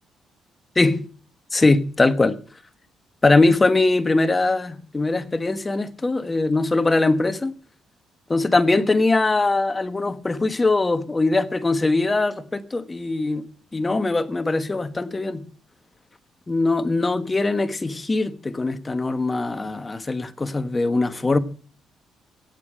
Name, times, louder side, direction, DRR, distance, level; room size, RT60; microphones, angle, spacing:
voice 1, 1.5-2.4 3.2-7.5 8.3-13.5 13.7-15.4 16.5-21.4, left 2 dB, 20° left, 1.2 m, -21 dB
16.0 x 8.6 x 5.0 m
cardioid pair, 90°, 0 cm